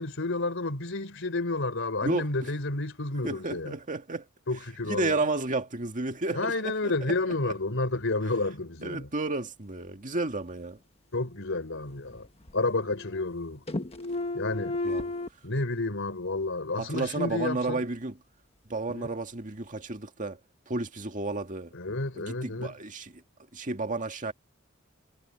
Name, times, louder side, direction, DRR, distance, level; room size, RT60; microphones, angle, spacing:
voice 1, 0.0-3.8 4.5-5.2 6.3-9.1 11.1-12.3 12.5-13.6 14.3-14.8 15.4-17.8 18.9-19.1 21.7-22.8, left 2 dB, 65° left, 3.9 m, -30 dB
voice 2, 2.0-2.5 3.2-4.3 4.8-6.9 8.8-10.8 14.8-15.1 16.8-18.2 18.7-20.4 20.7-21.7 22.2-23.2 23.5-24.3, right 2 dB, 40° right, 2.0 m, -32 dB
sound 1, 11.2-12.2 12.5-13.4 13.7-15.3, left 2 dB, 30° left, 1.5 m, -34 dB
head